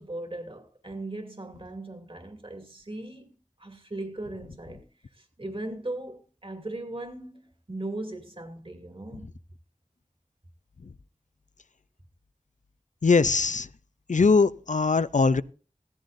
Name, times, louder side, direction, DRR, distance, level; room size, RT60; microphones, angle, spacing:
voice 1, 0.0-3.3 3.6-4.9 5.1-9.3, right 2 dB, 45° right, 2.6 m, -38 dB
voice 2, 13.0-13.7 14.1-15.4, left 4 dB, 70° left, 0.5 m, -21 dB
16.5 x 14.5 x 2.6 m
wide cardioid pair, 50°, 13 cm